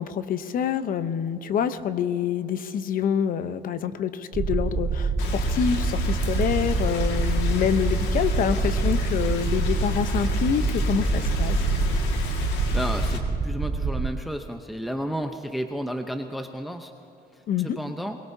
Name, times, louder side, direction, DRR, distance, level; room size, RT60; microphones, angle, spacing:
voice 1, 0.0-11.6 17.5-17.8, left 8 dB, 55° left, 12 dB, 0.8 m, -26 dB
sound 1, 4.3-14.1, right 4 dB, 35° right, 0.8 m, -26 dB
Rain, 5.2-13.2, left 4 dB, 85° left, 2.0 m, -30 dB
voice 2, 12.7-16.9 17.3-18.2, equal, ahead, 5 dB, 0.8 m, -32 dB
22.5 x 22.5 x 2.8 m, 2.8 s
cardioid pair, 110°, 17 cm